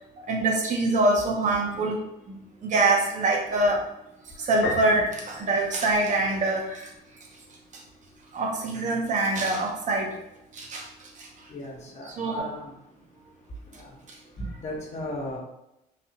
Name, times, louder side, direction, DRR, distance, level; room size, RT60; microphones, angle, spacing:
voice 1, 0.3-2.0 2.3-3.8 4.4-6.9 8.3-10.1 10.5-10.8 11.2-11.3 12.1-12.5, right 2 dB, 45° right, 1 dB, 0.9 m, -24 dB
Piano, 4.6-6.5, left 3 dB, 75° left, 1.0 m, -34 dB
voice 2, 11.5-12.7 14.6-15.4, left 1 dB, 40° left, -2 dB, 1.1 m, -36 dB
4.1 x 2.7 x 2.8 m, 0.86 s
cardioid pair, 110°, 17 cm